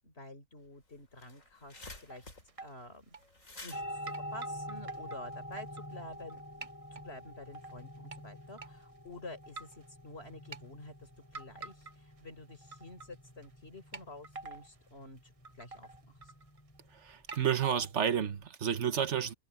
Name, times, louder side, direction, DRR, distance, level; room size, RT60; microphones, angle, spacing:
voice 1, 0.0-2.3 2.6-3.1 3.6-16.3, left 2 dB, 45° left, 4.8 m, -50 dB
sound 1, 0.7-0.8 1.0-5.3, left 2 dB, 60° left, 5.6 m, -51 dB
sound 2, 1.8-2.2 2.5-2.7 3.1-3.8 4.1-6.3 6.6-7.0 7.5-8.2 8.6-8.7 9.4-9.8 10.3-10.6 11.3-12.2 12.5-13.1 13.4-13.5 13.9-14.7 15.2-15.3 15.4-16.8 17.3-18.1, right 3 dB, 30° right, 0.7 m, -47 dB
sound 3, 3.7-18.5, equal, 10° left, 3.5 m, -47 dB
voice 2, 16.9-19.3, right 8 dB, 55° right, 1.3 m, -31 dB
omnidirectional pair, 1.5 m